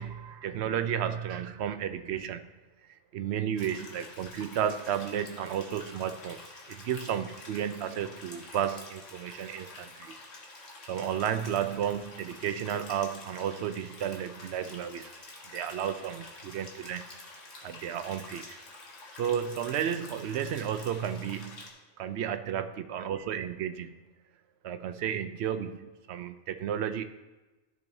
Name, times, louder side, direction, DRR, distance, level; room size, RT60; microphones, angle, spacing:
voice 1, 0.0-2.5 2.9-10.1 10.9-15.1 15.5-17.1 17.6-18.6 19.2-21.7 22.0-23.9 24.6-27.0, right 9 dB, 65° right, 9 dB, 0.8 m, -33 dB
sound 1, 3.6-21.7, left 3 dB, 80° left, 1.7 m, -48 dB
13.5 x 6.5 x 2.7 m, 1.1 s
omnidirectional pair, 1.3 m